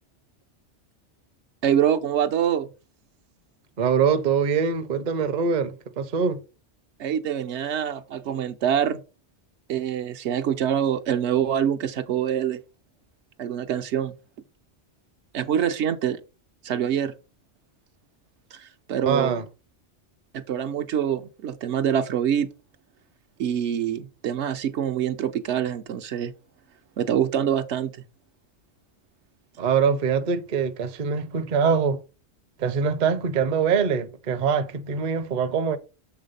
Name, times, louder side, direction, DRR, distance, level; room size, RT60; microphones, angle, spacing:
voice 1, 1.6-2.7 7.0-9.0 9.7-12.6 13.4-14.2 15.3-16.2 16.6-17.1 18.5-19.4 20.3-22.5 23.4-26.3 27.0-27.9, right 9 dB, 75° right, 0.9 m, -25 dB
voice 2, 3.8-6.4 19.1-19.4 29.6-32.0 32.6-35.8, right 6 dB, 45° right, 0.7 m, -23 dB
7.1 x 3.5 x 5.3 m
omnidirectional pair, 1.2 m